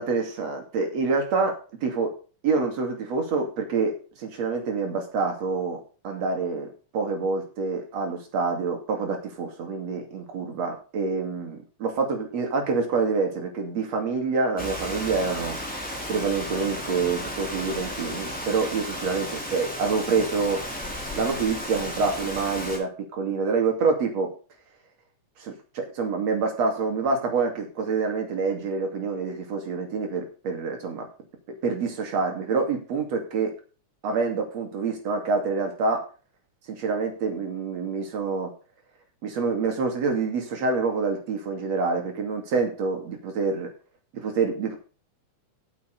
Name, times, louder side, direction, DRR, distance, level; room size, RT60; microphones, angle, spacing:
voice 1, 0.0-1.5 1.8-2.1 2.4-6.7 6.9-15.6 16.1-20.6 21.2-24.3 25.4-31.1 31.6-33.5 34.0-36.0 36.8-38.5 39.2-43.7 44.1-44.8, right 4 dB, 60° right, 3 dB, 3.7 m, -26 dB
Rain, 14.6-22.8, equal, 5° left, 2.8 m, -34 dB
8.7 x 7.2 x 6.7 m, 0.37 s
omnidirectional pair, 3.4 m